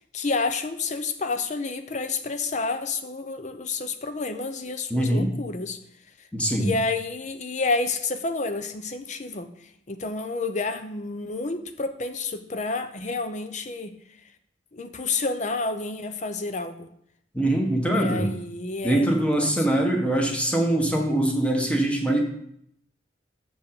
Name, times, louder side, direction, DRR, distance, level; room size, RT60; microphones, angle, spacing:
voice 1, 0.1-5.8 6.6-9.5 9.9-13.9 14.7-16.9 17.9-19.7, left 3 dB, 40° left, 9 dB, 0.7 m, -29 dB
voice 2, 4.9-5.3 6.3-6.7 17.3-18.3 18.8-22.2, right 1 dB, 5° left, 1 dB, 1.2 m, -23 dB
6.4 x 5.3 x 7.0 m, 0.70 s
head